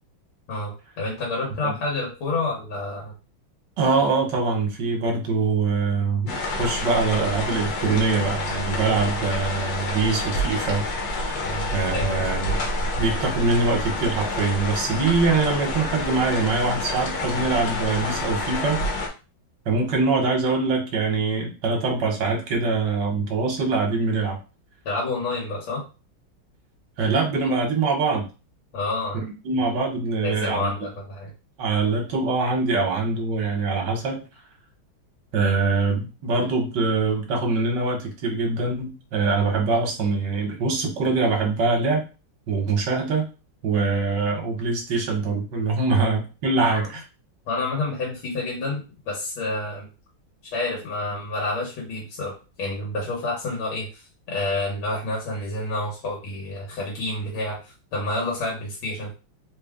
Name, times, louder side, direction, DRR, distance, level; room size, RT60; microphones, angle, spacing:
voice 1, 0.5-3.1 11.4-12.3 24.9-25.8 28.7-29.3 30.2-31.3 45.9-46.0 46.6-46.9 47.5-49.9 50.5-52.3 52.6-59.1, left 2 dB, 85° left, -3 dB, 1.9 m, -29 dB
voice 2, 3.8-10.8 11.7-12.6 13.0-18.8 19.7-24.4 27.0-28.3 29.2-30.7 31.6-34.2 35.3-42.0 42.5-43.3 43.6-47.0, right 4 dB, 65° right, 0 dB, 1.5 m, -23 dB
sound 1, 6.3-19.1, left 2 dB, 55° left, 1.2 m, -28 dB
4.0 x 2.2 x 3.5 m, 0.32 s
omnidirectional pair, 2.2 m